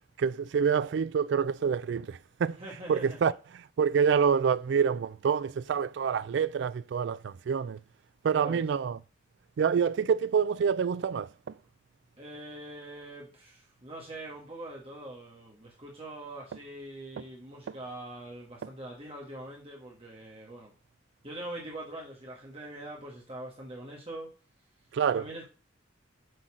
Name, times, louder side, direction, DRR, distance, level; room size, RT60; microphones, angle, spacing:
voice 1, 0.2-2.6 2.9-3.3 3.8-7.8 8.2-9.0 9.6-11.3 17.7-17.8 24.9-25.2, right 6 dB, 65° right, 0.3 m, -27 dB
voice 2, 2.6-3.2 8.3-8.6 12.2-20.7 21.2-24.3 25.1-25.5, right 1 dB, 30° right, 1.4 m, -43 dB
7.8 x 4.0 x 6.1 m
head